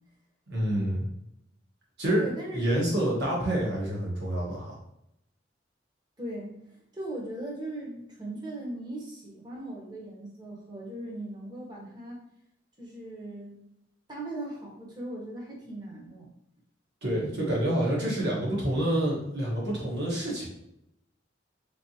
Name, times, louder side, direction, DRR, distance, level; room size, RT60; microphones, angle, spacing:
voice 1, 0.5-1.1 2.0-2.3 2.5-4.8 17.0-20.5, right 1 dB, 60° right, -4 dB, 1.3 m, -27 dB
voice 2, 2.2-2.9 6.2-12.2 12.8-13.6 14.1-16.3, right 1 dB, 20° right, -2 dB, 0.9 m, -39 dB
3.6 x 3.4 x 2.9 m, 0.80 s
head